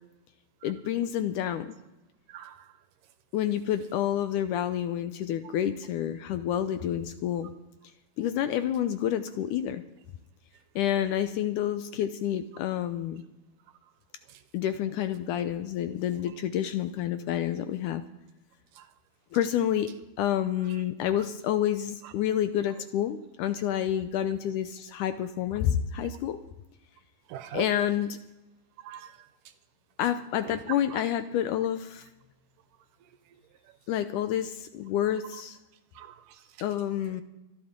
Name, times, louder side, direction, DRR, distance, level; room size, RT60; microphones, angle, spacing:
voice 1, 0.6-1.8 3.3-7.5 8.2-9.8 10.8-13.2 14.5-18.0 19.3-19.9 20.2-26.4 27.5-28.2 30.0-32.1 33.9-35.6 36.6-37.2, left 10 dB, 75° left, 1.9 m, -29 dB
voice 2, 2.3-2.7 14.3-14.4 18.8-18.9 22.0-22.1 27.3-27.7 28.8-29.2 30.4-30.6 30.9-31.0 36.0-36.4, right 12 dB, 80° right, 2.0 m, -42 dB
24.5 x 11.5 x 3.7 m
omnidirectional pair, 4.1 m